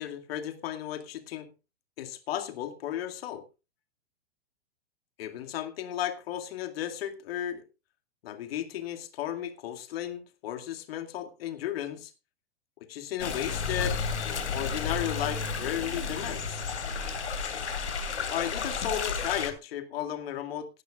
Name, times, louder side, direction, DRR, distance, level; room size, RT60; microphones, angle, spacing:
voice 1, 0.0-1.5 2.0-3.4 5.2-7.6 8.2-12.1 12.9-14.0 14.5-16.6 18.3-20.7, left 11 dB, 60° left, 2.3 m, -34 dB
sound 1, 13.2-19.5, left 5 dB, 80° left, 2.9 m, -32 dB
17.5 x 12.0 x 2.4 m
hypercardioid pair, 110°, 34 cm